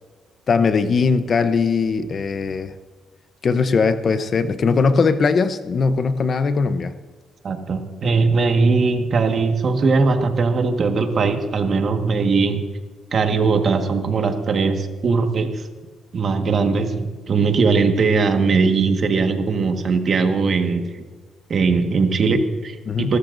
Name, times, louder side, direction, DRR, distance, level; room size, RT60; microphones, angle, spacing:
voice 1, 0.5-2.7 3.4-6.9 22.9-23.1, left 4 dB, 45° left, 0.8 m, -20 dB
voice 2, 7.4-12.6 13.1-15.6 16.1-21.0 21.5-23.2, right 4 dB, 50° right, 1.5 m, -20 dB
26.5 x 13.5 x 2.6 m
cardioid pair, 105°, 0 cm